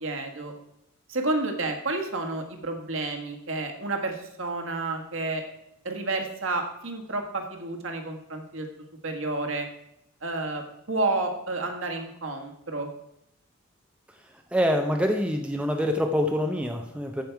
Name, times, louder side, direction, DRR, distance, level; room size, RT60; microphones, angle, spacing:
voice 1, 0.0-0.5 1.1-5.4 5.8-8.7 9.0-9.7 10.2-10.6 10.9-12.9, right 2 dB, 65° right, 3 dB, 1.6 m, -30 dB
voice 2, 14.5-17.2, equal, 5° right, 3 dB, 0.6 m, -25 dB
14.0 x 5.3 x 4.6 m, 0.80 s
head